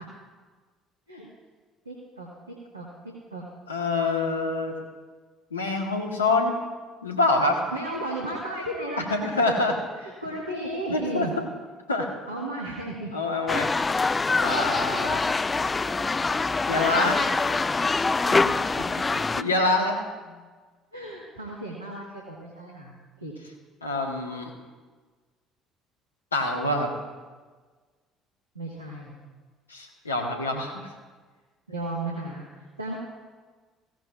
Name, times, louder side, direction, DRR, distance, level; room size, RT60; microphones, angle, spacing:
voice 1, 1.8-3.4 7.7-9.1 9.9-11.5 12.3-13.1 18.3-18.9 20.9-23.3 28.5-29.2 31.7-33.0, right 1 dB, 85° right, -3 dB, 1.4 m, -35 dB
voice 2, 3.7-4.7 5.5-6.6 7.0-7.6 9.1-9.7 10.9-11.3 11.9-12.1 13.1-13.7 14.4-15.3 16.7-17.3 19.4-20.0 23.8-24.5 26.3-26.9 29.7-30.9, left 2 dB, 85° left, 2 dB, 1.3 m, -25 dB
sound 1, 13.5-19.4, left 3 dB, 20° left, 0.4 m, -25 dB
16.5 x 14.0 x 2.5 m, 1.4 s
figure-of-eight pair, 55°, 0 cm